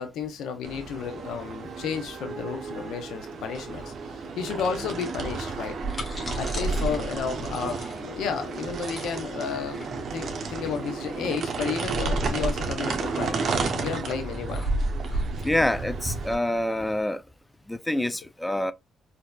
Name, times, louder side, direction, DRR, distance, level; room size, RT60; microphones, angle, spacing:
voice 1, 0.0-5.8 6.3-9.8 10.1-13.4 13.8-14.7, left 6 dB, 80° left, 0.6 m, -32 dB
sound 1, 0.6-16.4, right 4 dB, 60° right, 0.8 m, -33 dB
sound 2, 5.7-16.9, right 1 dB, 30° left, 1.2 m, -32 dB
voice 2, 15.4-17.2 17.7-18.7, left 1 dB, 10° left, 0.3 m, -26 dB
4.2 x 2.6 x 2.3 m
cardioid pair, 90°, 0 cm